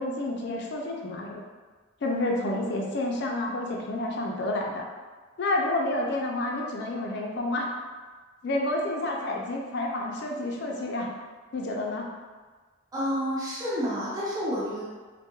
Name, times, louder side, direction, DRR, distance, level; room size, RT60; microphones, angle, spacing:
voice 1, 0.0-1.4 2.0-4.9 5.4-7.7 8.4-11.1 11.5-12.1, left 2 dB, 55° left, 0 dB, 0.4 m, -29 dB
voice 2, 12.9-14.8, equal, 20° right, -8 dB, 0.4 m, -29 dB
2.2 x 2.1 x 2.9 m, 1.4 s
head